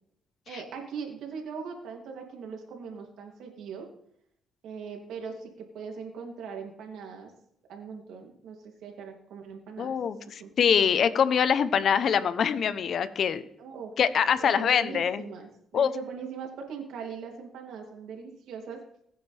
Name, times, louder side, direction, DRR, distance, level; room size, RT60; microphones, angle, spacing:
voice 1, 0.5-3.9 4.6-7.3 7.7-9.9 10.4-10.5 13.6-13.9 14.3-18.8, right 6 dB, 80° right, 2 dB, 3.0 m, -40 dB
voice 2, 9.8-13.4 14.0-15.2 15.7-15.9, left 7 dB, 60° left, 13 dB, 0.9 m, -24 dB
20.0 x 9.2 x 3.5 m, 0.71 s
cardioid pair, 90°, 0 cm